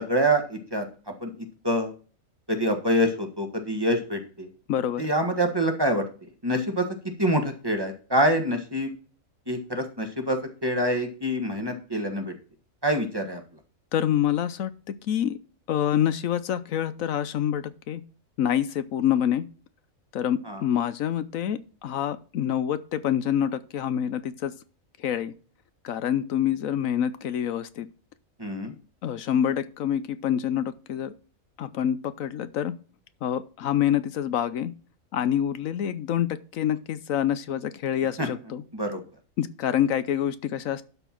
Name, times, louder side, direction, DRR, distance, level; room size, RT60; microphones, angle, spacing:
voice 1, 0.0-1.3 1.6-1.9 2.5-4.5 5.0-6.0 6.4-8.9 9.5-12.3 12.8-13.4 20.4-20.6 28.4-28.7 38.2-38.3 38.7-39.0, equal, 20° right, 4 dB, 1.6 m, -26 dB
voice 2, 4.7-5.1 13.9-15.4 15.7-18.0 18.4-19.4 20.1-24.5 25.0-25.3 25.8-27.9 29.0-31.1 31.6-32.7 33.2-34.7 35.1-38.6 39.4-40.8, left 10 dB, 75° left, 13 dB, 1.1 m, -26 dB
12.0 x 4.5 x 5.9 m, 0.37 s
omnidirectional pair, 1.4 m